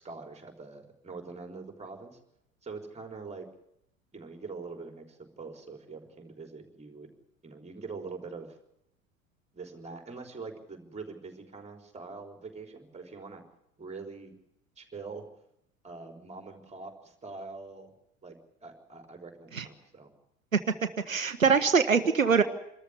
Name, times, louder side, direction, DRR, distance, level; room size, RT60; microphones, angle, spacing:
voice 1, 0.0-2.2 2.6-3.5 4.1-7.1 7.4-8.6 9.5-13.4 13.8-14.3 14.8-15.2 15.8-17.9 18.2-20.1, right 4 dB, 15° right, 4 dB, 4.1 m, -44 dB
voice 2, 21.1-22.4, right 5 dB, 90° right, 11 dB, 0.9 m, -23 dB
25.5 x 13.5 x 9.7 m, 0.80 s
figure-of-eight pair, 70°, 39 cm